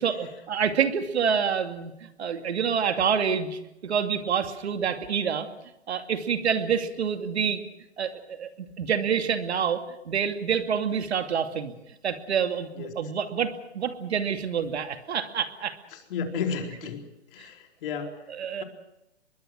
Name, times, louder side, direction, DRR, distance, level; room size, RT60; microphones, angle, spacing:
voice 1, 0.0-5.5 5.9-7.6 8.0-8.5 8.8-11.7 12.0-15.8 18.3-18.6, right 7 dB, 70° right, 7 dB, 2.6 m, -27 dB
voice 2, 15.9-17.0 17.3-18.2, left 6 dB, 50° left, 4 dB, 4.3 m, -32 dB
23.5 x 22.0 x 6.3 m, 0.90 s
hypercardioid pair, 135°, 34 cm